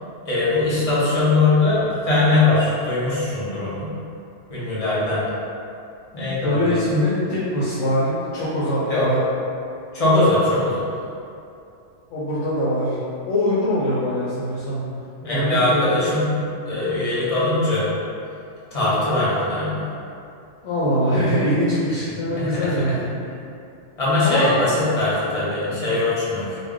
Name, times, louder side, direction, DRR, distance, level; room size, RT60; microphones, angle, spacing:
voice 1, 0.3-3.9 4.5-5.2 6.1-7.0 8.9-9.1 9.9-10.9 15.2-16.3 16.7-17.9 18.7-19.9 22.3-22.9 24.0-26.6, left 2 dB, 35° left, -9 dB, 0.7 m, -21 dB
voice 2, 6.4-9.2 12.1-13.0 13.3-14.8 15.3-15.9 20.6-23.0 24.2-24.6 25.6-25.8, equal, 80° left, -9 dB, 0.9 m, -22 dB
2.3 x 2.1 x 3.6 m, 2.6 s
omnidirectional pair, 1.2 m